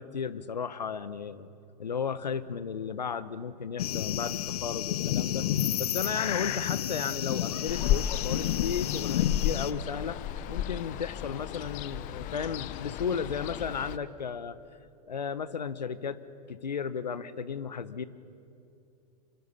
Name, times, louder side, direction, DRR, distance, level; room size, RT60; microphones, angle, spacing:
voice 1, 0.0-1.5 1.8-5.5 5.8-10.2 10.5-14.6 15.1-16.2 16.5-18.0, left 6 dB, 85° left, 15 dB, 1.0 m, -34 dB
sound 1, 3.8-9.7, left 11 dB, 65° left, 1.0 m, -30 dB
Ocean, 7.7-14.0, left 11 dB, 40° left, 1.0 m, -33 dB
27.5 x 25.0 x 5.6 m, 2.7 s
hypercardioid pair, 105°, 21 cm